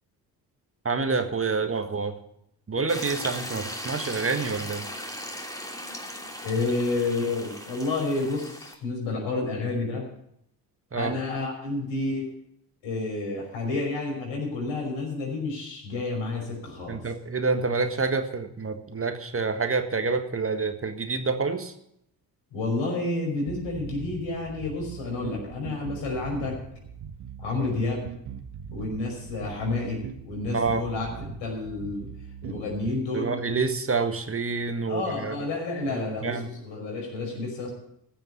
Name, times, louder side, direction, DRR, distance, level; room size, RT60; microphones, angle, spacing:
voice 1, 0.8-2.1 2.7-4.9 10.9-11.1 16.9-21.7 30.5-30.8 32.4-32.6 33.1-35.3 35.9-36.5, right 4 dB, 25° right, 7 dB, 1.6 m, -27 dB
sound 1, 2.9-8.7, equal, 5° left, 2.9 m, -37 dB
voice 2, 6.4-10.1 10.9-12.3 12.8-17.0 22.5-26.6 27.4-28.1 28.7-31.1 31.4-32.1 32.4-33.3 34.9-37.7, left 3 dB, 65° left, 0 dB, 5.7 m, -30 dB
sound 2, 23.5-33.0, right 7 dB, 50° right, 1.5 m, -40 dB
15.0 x 7.1 x 8.0 m, 0.74 s
hypercardioid pair, 50°, 49 cm